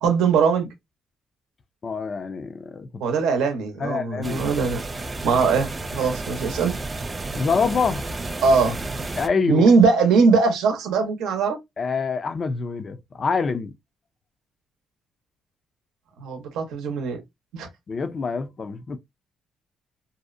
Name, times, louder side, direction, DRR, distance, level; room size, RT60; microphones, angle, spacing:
voice 1, 0.0-0.7 3.0-4.8 5.2-6.7 8.4-8.8 9.5-11.6 16.2-17.2 17.5-17.7, right 5 dB, 90° right, 0.7 m, -20 dB
voice 2, 1.8-2.9 3.8-4.4 7.3-8.1 9.2-9.7 11.8-13.7 17.9-19.0, left 5 dB, 40° left, 0.4 m, -26 dB
sound 1, 4.2-9.3, right 2 dB, 25° right, 0.3 m, -32 dB
2.6 x 2.0 x 2.4 m
cardioid pair, 90°, 0 cm